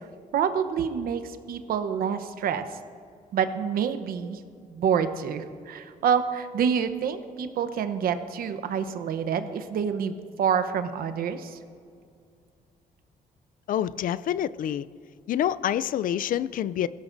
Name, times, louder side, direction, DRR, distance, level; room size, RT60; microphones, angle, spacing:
voice 1, 0.3-2.6 3.3-4.4 4.7-11.6, right 7 dB, 80° right, 9 dB, 0.9 m, -27 dB
voice 2, 13.7-14.9 15.3-16.9, left 10 dB, 65° left, 18 dB, 0.4 m, -27 dB
21.0 x 16.5 x 2.6 m, 2.3 s
cardioid pair, 105°, 15 cm